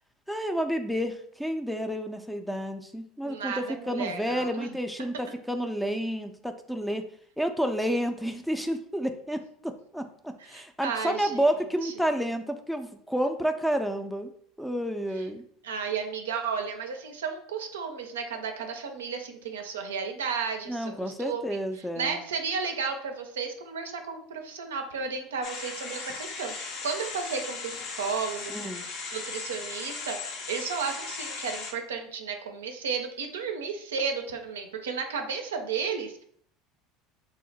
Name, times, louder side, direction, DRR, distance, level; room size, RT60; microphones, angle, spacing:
voice 1, 0.3-7.0 7.4-14.3 14.6-15.4 20.7-22.2 28.5-28.8, equal, ahead, 7 dB, 0.4 m, -30 dB
voice 2, 3.2-4.7 10.4-11.4 11.8-11.9 15.1-15.3 15.6-21.4 22.0-30.2 30.5-36.2, right 5 dB, 85° right, 5 dB, 0.4 m, -33 dB
sound 1, 25.4-31.7, left 4 dB, 60° left, 0.6 m, -37 dB
2.7 x 2.1 x 3.9 m, 0.64 s
hypercardioid pair, 75°, 0 cm